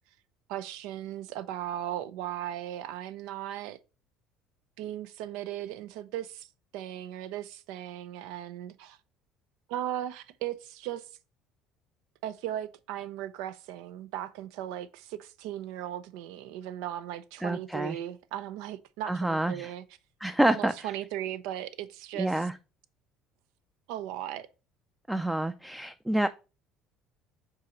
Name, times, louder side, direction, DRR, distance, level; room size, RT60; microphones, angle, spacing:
voice 1, 0.5-3.8 4.8-6.5 6.7-9.0 9.7-11.1 12.2-19.8 20.5-22.5 23.9-24.5, right 12 dB, 80° right, 0.5 m, -37 dB
voice 2, 17.4-18.0 19.0-19.7 20.2-20.7 22.2-22.5 25.1-26.3, right 1 dB, 5° right, 0.4 m, -27 dB
5.4 x 4.0 x 5.1 m
supercardioid pair, 95°, 0 cm